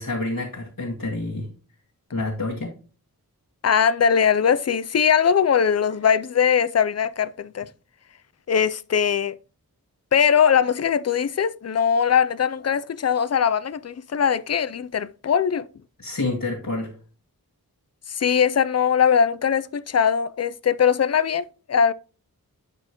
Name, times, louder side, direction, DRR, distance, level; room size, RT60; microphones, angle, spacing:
voice 1, 0.0-1.5 2.1-2.7 16.0-16.9, left 2 dB, 60° left, 1.9 m, -28 dB
voice 2, 3.6-7.7 8.5-9.4 10.1-15.7 18.1-21.9, left 7 dB, 45° left, 0.4 m, -21 dB
11.0 x 4.5 x 2.9 m
wide cardioid pair, 50°, 37 cm